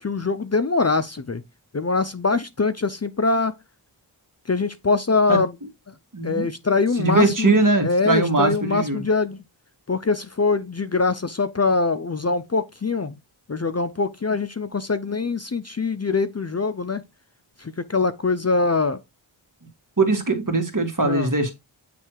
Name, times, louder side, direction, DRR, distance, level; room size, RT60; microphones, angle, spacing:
voice 1, 0.0-1.4 1.7-3.5 4.5-5.5 6.2-9.4 9.9-13.1 13.5-17.0 17.6-19.0 21.0-21.3, left 4 dB, 35° left, 0.6 m, -23 dB
voice 2, 6.1-6.4 7.0-9.0 20.0-21.5, right 2 dB, 40° right, 1.9 m, -21 dB
9.1 x 3.3 x 4.7 m
wide cardioid pair, 50°, 47 cm